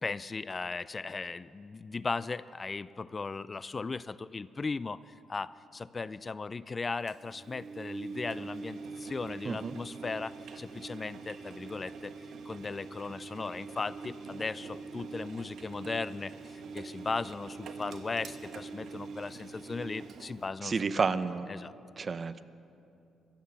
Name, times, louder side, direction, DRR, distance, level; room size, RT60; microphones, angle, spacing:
voice 1, 0.0-12.1 12.4-21.0 21.5-21.7, left 4 dB, 30° left, 18 dB, 0.3 m, -37 dB
Engine, 7.1-20.5, right 4 dB, 65° right, 1.3 m, -44 dB
voice 2, 9.4-9.8 20.6-21.5 22.0-22.4, right 4 dB, 35° right, 14 dB, 0.6 m, -30 dB
23.5 x 8.7 x 6.9 m, 2.6 s
cardioid pair, 90°, 0 cm